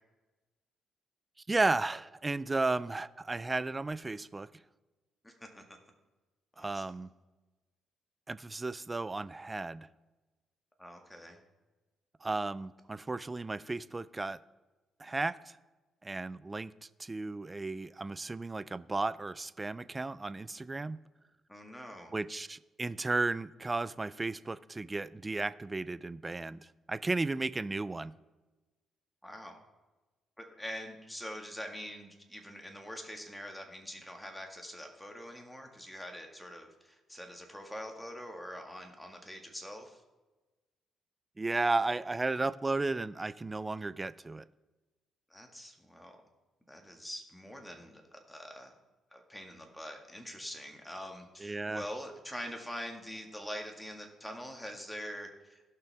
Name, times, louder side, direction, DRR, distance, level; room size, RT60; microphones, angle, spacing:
voice 1, 1.5-4.5 6.6-7.1 8.3-9.9 12.2-14.4 15.0-15.5 16.0-16.7 17.0-21.0 22.1-28.1 41.4-44.4 51.4-51.8, right 3 dB, 20° right, 0.3 m, -34 dB
voice 2, 5.2-5.8 6.6-6.9 10.8-11.4 21.5-22.1 29.2-29.5 30.4-40.0 45.3-46.2 46.7-48.7 49.1-55.7, equal, 5° left, 1.7 m, -44 dB
17.0 x 5.9 x 3.5 m
cardioid pair, 90°, 0 cm